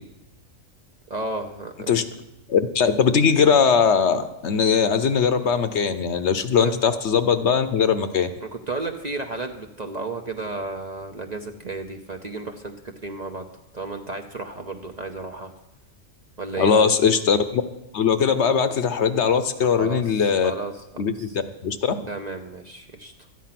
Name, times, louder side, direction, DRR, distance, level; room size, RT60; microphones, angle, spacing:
voice 1, 1.1-1.9 6.6-6.7 8.4-12.7 13.0-13.5 13.7-15.5 16.4-16.9 19.6-20.8 21.1-21.4 22.1-23.1, right 3 dB, 40° right, 3 dB, 0.7 m, -33 dB
voice 2, 2.5-8.3 16.6-17.6 17.9-20.5 21.0-21.3 21.6-21.9, left 6 dB, 60° left, 10 dB, 0.9 m, -20 dB
13.0 x 9.5 x 5.8 m, 0.92 s
omnidirectional pair, 1.4 m